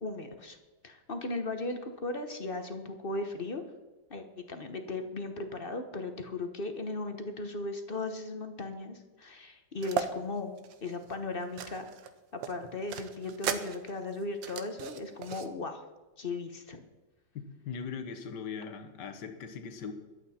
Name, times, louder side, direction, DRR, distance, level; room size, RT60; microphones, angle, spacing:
voice 1, 0.0-0.6 0.8-3.6 4.1-10.5 10.8-11.9 12.3-15.9 16.2-16.8, left 2 dB, 40° left, 7 dB, 0.9 m, -37 dB
sound 1, 9.8-10.1 10.6-12.1 12.4-15.5, right 8 dB, 75° right, 1.6 m, -36 dB
voice 2, 17.4-19.9, left 6 dB, 65° left, 7 dB, 1.8 m, -40 dB
22.5 x 8.5 x 4.3 m, 1.1 s
omnidirectional pair, 2.1 m